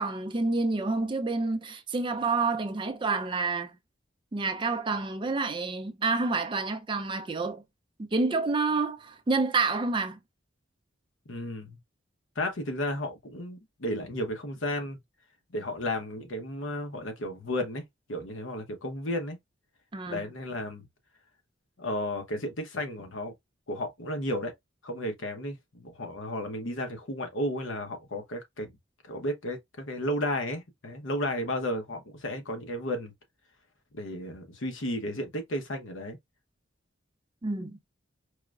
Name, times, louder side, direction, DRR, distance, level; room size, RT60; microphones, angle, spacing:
voice 1, 0.0-3.7 4.3-7.6 8.0-10.2 19.9-20.3 37.4-37.8, right 3 dB, 25° right, 0.4 m, -28 dB
voice 2, 11.3-11.8 12.4-15.0 15.5-17.8 18.1-19.4 20.1-20.9 21.8-23.3 23.7-24.5 24.8-28.7 29.0-33.1 33.9-36.2, left 1 dB, 75° left, 0.9 m, -33 dB
4.7 x 2.1 x 2.3 m
head